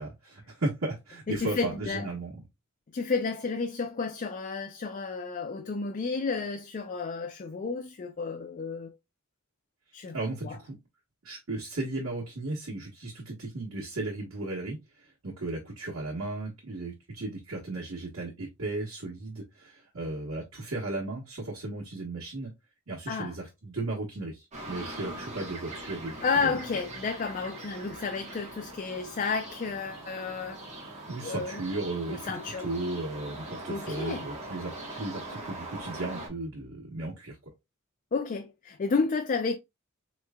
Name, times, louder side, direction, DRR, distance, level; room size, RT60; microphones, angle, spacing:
voice 1, 0.0-2.4 10.1-10.7 11.2-22.5 22.9-26.5 31.1-32.3 32.6-37.4, right 2 dB, 80° right, 1.2 m, -35 dB
voice 2, 1.3-2.1 2.9-9.0 9.9-10.2 10.4-10.6 23.1-23.3 26.2-30.6 31.2-31.6 32.1-32.7 33.7-34.3 38.1-39.6, left 4 dB, 40° left, 0.4 m, -31 dB
sound 1, 24.5-36.3, right 2 dB, 35° right, 1.1 m, -42 dB
4.4 x 3.0 x 2.3 m
head